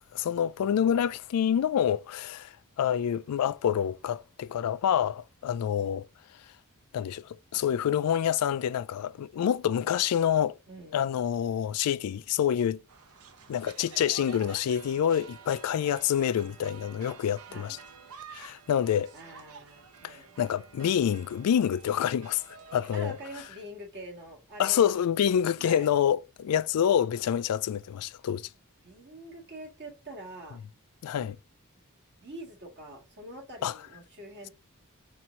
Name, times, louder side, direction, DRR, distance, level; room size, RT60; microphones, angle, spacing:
voice 1, 0.1-6.1 6.9-10.6 10.9-12.8 13.5-17.8 18.3-19.1 20.0-22.4 22.7-23.2 24.6-28.5 31.0-31.4 33.6-33.7, left 9 dB, 90° left, 0.3 m, -27 dB
voice 2, 10.7-11.0 17.5-17.8 19.1-20.3 22.9-24.9 25.6-25.9 28.8-30.6 32.2-34.5, right 1 dB, 50° right, 1.8 m, -44 dB
sound 1, 12.9-23.5, right 6 dB, 85° right, 0.8 m, -50 dB
4.3 x 2.6 x 4.4 m
head